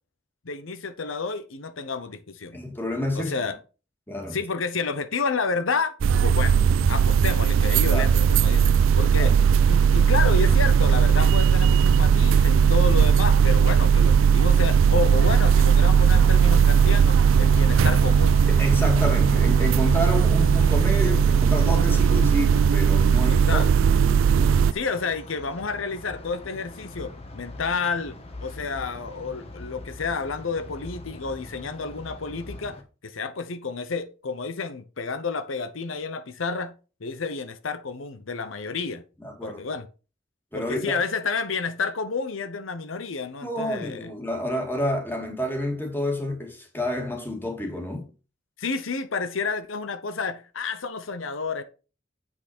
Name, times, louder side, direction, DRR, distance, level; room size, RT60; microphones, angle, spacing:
voice 1, 0.4-2.6 3.1-3.6 4.3-6.0 6.2-6.6 6.9-9.3 9.7-18.4 23.3-23.9 24.7-28.2 28.4-32.8 33.0-36.7 37.0-39.0 39.4-39.9 40.5-44.1 48.6-51.6, left 4 dB, 90° left, 0.8 m, -30 dB
voice 2, 2.5-3.3 4.1-4.4 7.9-8.1 9.2-9.3 18.5-23.6 24.3-24.6 39.2-39.6 40.5-41.0 43.4-48.1, left 1 dB, 10° left, 2.2 m, -29 dB
sound 1, 6.0-24.7, right 7 dB, 90° right, 0.4 m, -18 dB
sound 2, 15.0-32.8, left 2 dB, 30° left, 1.4 m, -42 dB
7.9 x 6.0 x 4.3 m
head